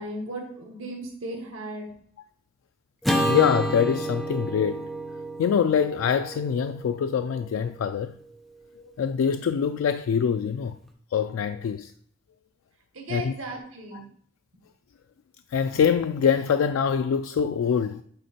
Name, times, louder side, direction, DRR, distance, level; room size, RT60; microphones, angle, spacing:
voice 1, 0.0-1.9 12.9-14.0, right 1 dB, 85° right, 1.4 m, -36 dB
Acoustic guitar / Strum, 3.0-7.5, right 1 dB, ahead, 0.8 m, -30 dB
voice 2, 3.1-4.9 5.4-8.2 9.0-10.8 11.1-11.9 13.1-13.3 13.9-14.0 15.5-18.0, left 7 dB, 85° left, 0.3 m, -24 dB
8.1 x 3.5 x 4.4 m
head